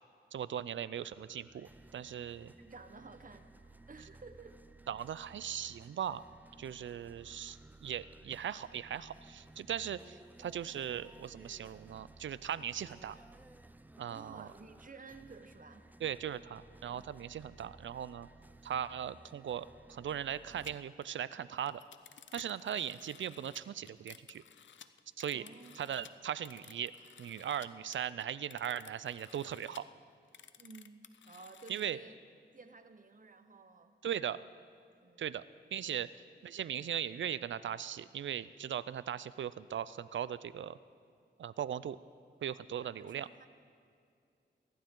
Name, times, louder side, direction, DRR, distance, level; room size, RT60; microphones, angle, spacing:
voice 1, 0.3-2.5 4.9-6.2 6.6-13.2 14.0-14.5 16.0-18.3 18.6-21.8 22.3-24.4 25.2-25.4 25.8-26.9 27.2-29.8 31.7-32.0 34.0-34.4 35.2-35.4 35.7-36.1 36.4-40.8 41.4-42.0 42.4-43.3, right 9 dB, 85° right, 17 dB, 0.4 m, -39 dB
sound 1, 0.9-20.7, right 2 dB, 10° right, 0.4 m, -58 dB
voice 2, 2.6-3.5 3.9-4.6 14.1-15.9 25.3-25.9 30.6-32.2 32.5-34.0 35.0-35.3 42.8-43.5, right 4 dB, 45° right, 9 dB, 1.0 m, -53 dB
sound 2, 20.6-20.7 21.0-21.1 21.4-27.7 27.9-29.8 30.3-31.9, left 8 dB, 75° left, 0.6 m, -56 dB
24.0 x 12.0 x 3.8 m, 2.4 s
cardioid pair, 70°, 19 cm